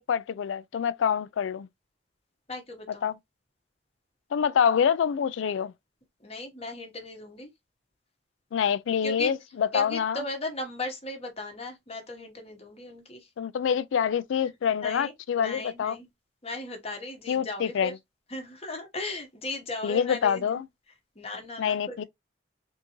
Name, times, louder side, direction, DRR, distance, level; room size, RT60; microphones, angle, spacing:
voice 1, 0.0-1.7 3.0-3.1 4.3-5.7 8.5-10.2 13.4-16.0 17.3-18.0 19.8-20.7 21.6-22.0, left 7 dB, 90° left, 0.3 m, -26 dB
voice 2, 2.5-3.1 6.2-7.5 9.0-9.3 9.7-13.3 14.4-16.1 16.4-17.9 18.3-20.6 21.2-22.0, left 2 dB, 35° left, 1.0 m, -37 dB
3.5 x 2.6 x 2.9 m
head